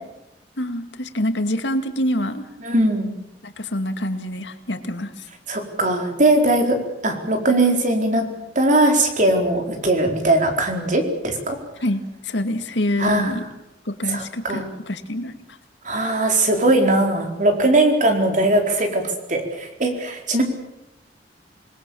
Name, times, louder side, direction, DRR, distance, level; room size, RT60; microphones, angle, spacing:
voice 1, 0.6-2.5 3.4-5.3 11.8-13.5 13.9-15.6, left 1 dB, 90° left, 8 dB, 2.2 m, -26 dB
voice 2, 2.6-3.1 5.5-6.8 7.0-8.2 8.5-11.6 13.0-13.4 14.1-14.7 15.8-19.0 19.3-20.4, right 2 dB, 45° right, 4 dB, 4.4 m, -19 dB
27.5 x 20.5 x 7.2 m, 0.89 s
head